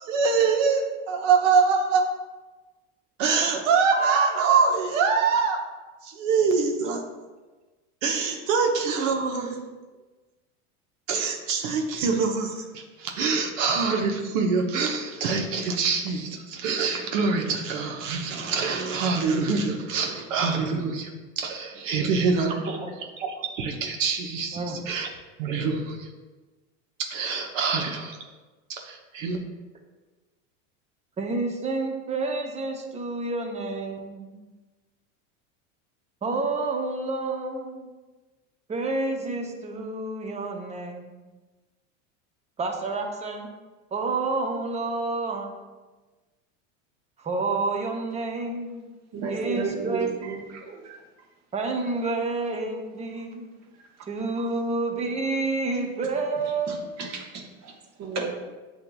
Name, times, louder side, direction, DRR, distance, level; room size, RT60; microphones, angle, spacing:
voice 1, 0.0-2.0 3.2-5.6 6.0-7.0 8.0-9.6 11.1-21.1 21.4-22.8 23.2-25.1 25.4-26.1 27.1-28.2 28.7-29.4, right 5 dB, 75° right, 3 dB, 0.9 m, -25 dB
voice 2, 31.2-34.5 36.2-37.9 38.7-41.2 42.6-43.5 43.9-45.5 47.2-48.9 49.3-50.3 51.5-53.5 54.1-57.3, right 3 dB, 15° right, 3 dB, 0.6 m, -29 dB
voice 3, 49.1-50.4 50.7-51.0 56.7-57.4 58.0-58.3, right 5 dB, 45° right, 1 dB, 1.0 m, -32 dB
7.9 x 2.8 x 2.3 m, 1.2 s
supercardioid pair, 105°, 39 cm